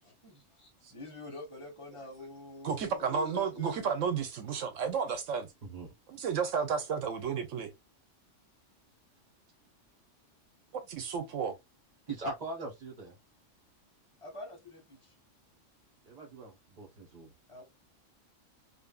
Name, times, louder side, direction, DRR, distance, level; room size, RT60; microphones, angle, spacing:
voice 1, 0.0-3.9 14.2-15.1 17.5-17.6, left 3 dB, 25° left, 1.3 m, -46 dB
voice 2, 2.6-5.5 6.1-7.7 10.9-11.5, right 6 dB, 85° right, 1.1 m, -32 dB
voice 3, 5.6-5.9 12.1-13.1 16.0-17.3, right 2 dB, 35° right, 1.3 m, -41 dB
2.6 x 2.5 x 2.3 m
omnidirectional pair, 1.3 m